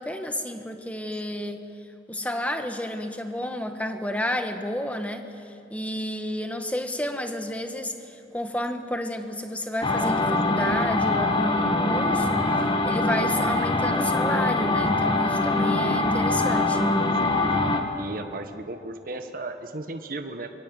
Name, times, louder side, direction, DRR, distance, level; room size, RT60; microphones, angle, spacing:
voice 1, 0.0-1.6 2.1-17.0, left 1 dB, 10° left, 6 dB, 1.4 m, -31 dB
sound 1, 9.8-17.8, left 2 dB, 25° left, 1.8 m, -23 dB
voice 2, 18.0-20.5, right 2 dB, 50° right, 6 dB, 1.3 m, -35 dB
25.0 x 22.5 x 7.8 m, 2.7 s
head